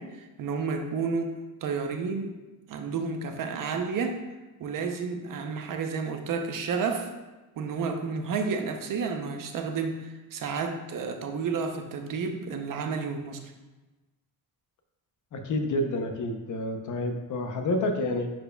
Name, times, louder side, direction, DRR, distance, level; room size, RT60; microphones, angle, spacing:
voice 1, 0.0-2.4 2.7-4.2 4.6-7.1 7.6-13.4, right 5 dB, 60° right, 5 dB, 0.7 m, -31 dB
voice 2, 15.3-18.3, left 1 dB, 55° left, 5 dB, 0.8 m, -29 dB
10.0 x 4.5 x 2.3 m, 1.1 s
wide cardioid pair, 165°, 36 cm